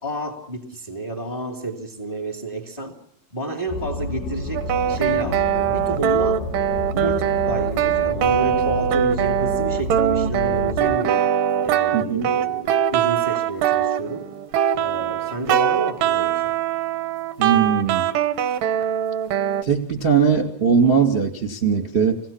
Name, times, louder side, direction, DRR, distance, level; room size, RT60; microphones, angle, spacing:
voice 1, 0.0-3.0 3.3-6.5 6.9-11.3 11.6-14.3 14.8-16.5 18.5-18.6, right 2 dB, 15° left, 4 dB, 1.9 m, -30 dB
sound 1, 3.7-11.0, left 2 dB, 65° left, 2.4 m, -30 dB
sound 2, 4.5-19.6, right 10 dB, 75° right, 2.0 m, -22 dB
voice 2, 11.9-12.2 17.4-18.1 19.6-22.2, right 6 dB, 20° right, 4 dB, 1.7 m, -20 dB
27.0 x 18.5 x 7.3 m, 0.64 s
omnidirectional pair, 5.2 m